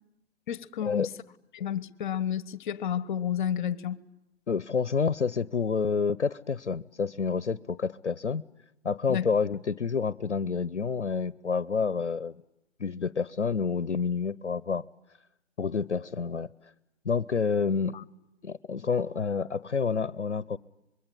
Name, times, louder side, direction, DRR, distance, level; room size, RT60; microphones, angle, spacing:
voice 1, 0.5-1.1 1.5-4.0 9.1-9.3 17.9-18.0, left 9 dB, 45° left, 19 dB, 1.3 m, -31 dB
voice 2, 4.5-8.4 8.8-12.4 12.8-14.8 15.6-16.5 17.0-18.0 18.4-20.6, left 5 dB, 85° left, 19 dB, 0.9 m, -28 dB
25.5 x 23.0 x 9.8 m, 0.89 s
figure-of-eight pair, 125°, 34 cm